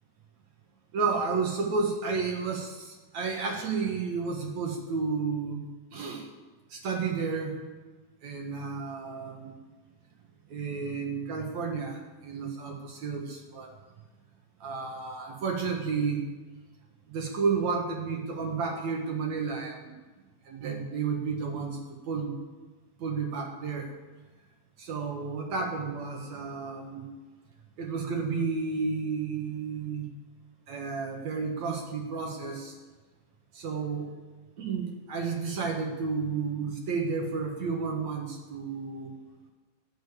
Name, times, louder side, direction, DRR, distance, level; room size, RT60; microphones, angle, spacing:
voice 1, 0.9-6.3 6.7-7.6 8.2-9.6 10.5-13.7 14.6-16.2 17.1-19.9 20.4-21.8 22.1-22.3 23.0-23.9 24.8-27.1 27.8-30.1 30.7-32.8 33.5-34.1 34.6-39.1, right 5 dB, 55° right, 1 dB, 2.6 m, -32 dB
17.0 x 7.0 x 8.5 m, 1.3 s
omnidirectional pair, 4.2 m